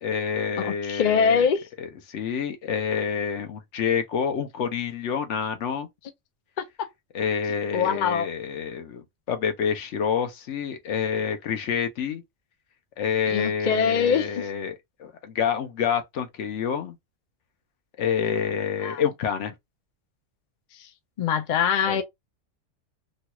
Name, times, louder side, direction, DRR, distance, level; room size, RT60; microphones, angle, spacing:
voice 1, 0.0-1.4 1.8-5.9 7.1-12.2 13.0-17.0 18.0-19.5 21.8-22.0, left 7 dB, 75° left, 1.0 m, -28 dB
voice 2, 0.6-1.6 6.6-6.9 7.7-8.3 13.3-14.4 18.8-19.0 21.2-22.0, left 7 dB, 55° left, 0.5 m, -23 dB
3.1 x 2.3 x 2.9 m
omnidirectional pair, 1.2 m